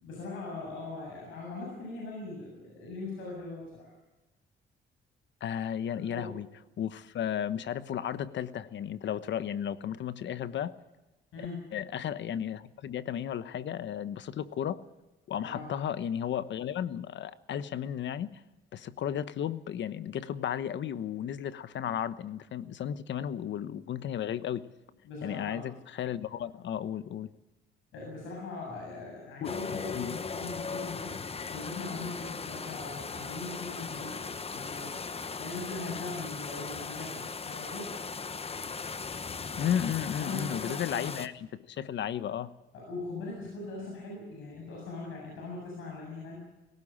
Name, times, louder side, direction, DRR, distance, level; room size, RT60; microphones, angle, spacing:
voice 1, 0.0-3.9 5.9-6.3 11.3-11.7 15.4-15.7 25.0-25.7 27.9-31.1 31.5-34.9 35.4-38.0 40.1-41.0 42.7-46.4, left 3 dB, 85° left, -1 dB, 7.4 m, -40 dB
voice 2, 5.4-6.5 6.8-10.7 11.4-11.5 11.7-14.8 15.3-18.4 18.7-24.6 25.2-27.3 29.4-29.6 29.9-30.2 39.6-42.5, left 9 dB, 65° left, 14 dB, 1.1 m, -34 dB
sound 1, 29.4-41.3, left 5 dB, 30° left, 1.1 m, -38 dB
19.0 x 17.5 x 8.9 m, 1.0 s
cardioid pair, 90°, 20 cm